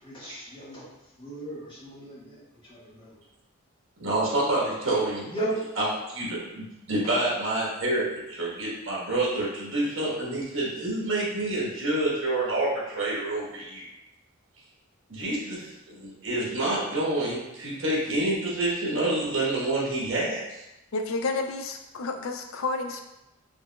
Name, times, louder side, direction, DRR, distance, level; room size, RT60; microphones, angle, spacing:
voice 1, 0.0-0.8 1.2-3.1 5.3-5.6, right 2 dB, 25° left, -9 dB, 1.5 m, -35 dB
voice 2, 4.0-5.3 5.8-13.8 15.1-20.6, right 2 dB, 65° right, -5 dB, 1.4 m, -28 dB
voice 3, 20.9-23.0, left 3 dB, 70° left, 5 dB, 0.5 m, -30 dB
4.7 x 3.3 x 2.3 m, 0.93 s
head